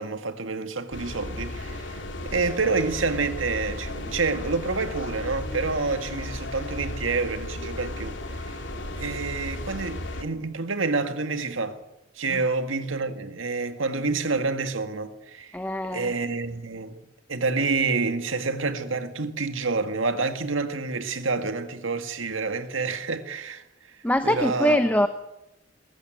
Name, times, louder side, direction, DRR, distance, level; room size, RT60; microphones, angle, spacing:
voice 1, 0.0-8.6 8.9-11.8 12.2-15.6 15.9-17.0 17.3-23.6 24.2-24.8, right 4 dB, 85° right, 1.9 m, -28 dB
sound 1, 0.9-10.2, left 1 dB, 70° left, 2.5 m, -35 dB
voice 2, 15.5-16.1 24.0-25.1, left 1 dB, 10° left, 0.7 m, -23 dB
21.5 x 13.5 x 9.2 m
head